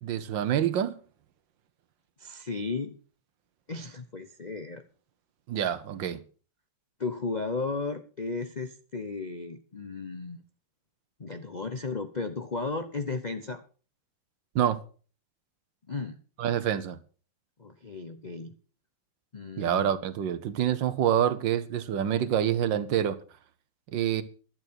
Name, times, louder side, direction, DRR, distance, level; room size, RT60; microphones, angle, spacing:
voice 1, 0.0-1.0 5.5-6.2 14.5-14.8 16.4-17.0 19.6-23.2 23.9-24.2, right 10 dB, 70° right, 1.6 m, -27 dB
voice 2, 2.2-3.0 3.7-4.8 7.0-10.4 11.2-13.6 15.9-16.2 17.6-18.5 19.3-19.9, left 3 dB, 70° left, 0.4 m, -34 dB
11.5 x 9.0 x 6.3 m
omnidirectional pair, 2.2 m